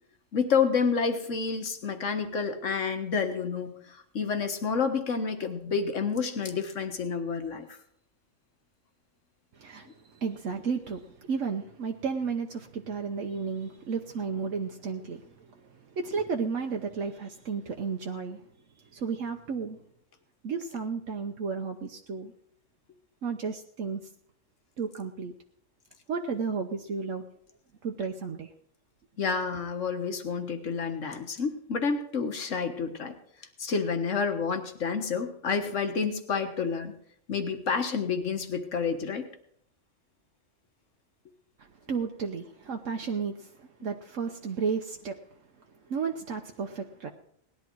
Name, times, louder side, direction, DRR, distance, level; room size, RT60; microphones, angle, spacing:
voice 1, 0.3-7.7 29.2-33.1 33.6-36.9 37.3-39.3, left 5 dB, 75° left, 6 dB, 1.8 m, -29 dB
voice 2, 9.6-15.6 15.9-18.4 18.9-19.8 20.4-22.3 23.2-24.0 24.8-25.3 26.1-27.2 27.8-28.5 41.6-45.2 45.9-47.1, right 5 dB, 80° right, 3 dB, 1.3 m, -33 dB
18.5 x 11.0 x 4.6 m, 0.68 s
omnidirectional pair, 1.3 m